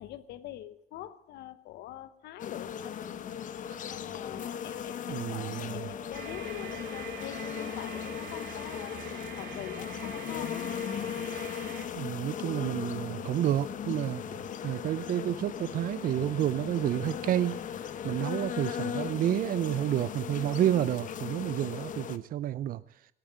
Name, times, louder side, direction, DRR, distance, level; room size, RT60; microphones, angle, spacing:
voice 1, 0.0-3.0 3.9-9.1 9.4-10.7, left 12 dB, 75° left, 15 dB, 0.9 m, -44 dB
sound 1, 2.4-22.2, left 8 dB, 50° left, 0.9 m, -37 dB
voice 2, 5.1-5.8 12.0-14.2 14.6-17.6 18.0-22.8, right 12 dB, 55° right, 17 dB, 0.6 m, -30 dB
sound 2, 5.6-8.6, right 3 dB, 35° right, 2.6 m, -57 dB
sound 3, 6.1-11.9, right 8 dB, 75° right, 3.1 m, -44 dB
17.5 x 8.9 x 8.6 m, 0.72 s
cardioid pair, 110°, 17 cm